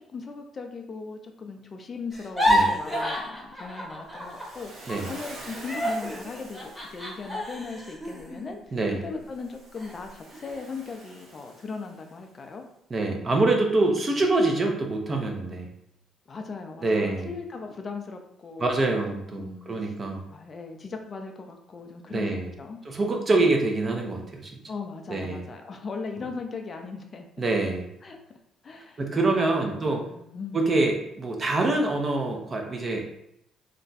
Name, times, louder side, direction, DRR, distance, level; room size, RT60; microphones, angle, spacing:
voice 1, 0.0-4.7 5.1-8.6 9.0-12.6 16.3-18.7 19.3-19.9 20.3-22.8 24.7-27.3 28.0-28.2 28.6-29.3 29.6-30.7, left 4 dB, 40° left, 4 dB, 0.4 m, -38 dB
sound 1, 2.1-4.6 4.9-9.3 9.8-9.9 10.3-10.8, equal, 5° right, 1.0 m, -29 dB
Waves surf, 4.2-7.4 9.2-12.3, right 2 dB, 70° right, 0.8 m, -46 dB
voice 2, 8.7-9.0 12.9-15.7 16.8-17.3 18.6-20.2 22.1-22.5 22.8-24.5 25.1-25.5 27.4-27.9 29.0-30.0 30.5-33.2, right 2 dB, 35° right, 2 dB, 0.6 m, -25 dB
2.5 x 2.2 x 3.9 m, 0.77 s
cardioid pair, 100°, 0 cm